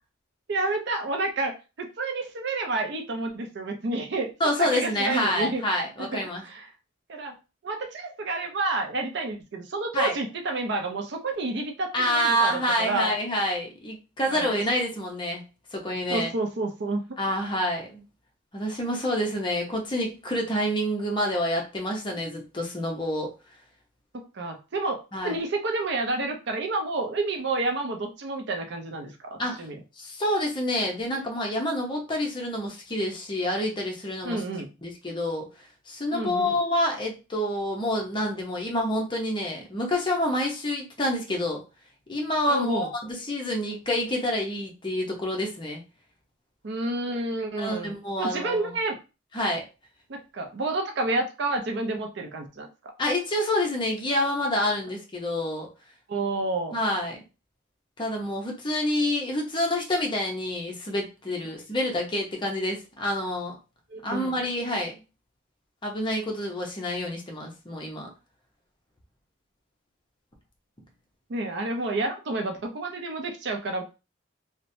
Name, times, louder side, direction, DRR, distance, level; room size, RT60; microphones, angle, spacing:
voice 1, 0.5-4.3 4.6-5.6 6.0-6.7 7.1-7.3 7.6-13.1 14.3-14.6 16.1-17.2 24.1-25.0 25.2-29.8 34.2-34.7 36.1-36.6 42.5-42.9 46.6-47.9 48.2-49.0 50.1-52.7 56.1-56.8 63.9-64.4 71.3-73.8, right 2 dB, 60° right, 4 dB, 0.5 m, -29 dB
voice 2, 4.4-6.4 9.9-10.1 11.9-15.4 15.7-16.3 17.2-18.0 18.5-23.3 25.1-25.4 29.4-29.7 30.0-34.4 34.8-35.5 35.9-41.6 42.1-45.8 47.6-48.7 49.3-49.6 53.0-55.7 56.7-57.2 58.0-63.6 64.0-65.0 65.8-68.1, left 1 dB, 25° left, 1 dB, 0.7 m, -28 dB
3.0 x 2.1 x 2.6 m, 0.30 s
head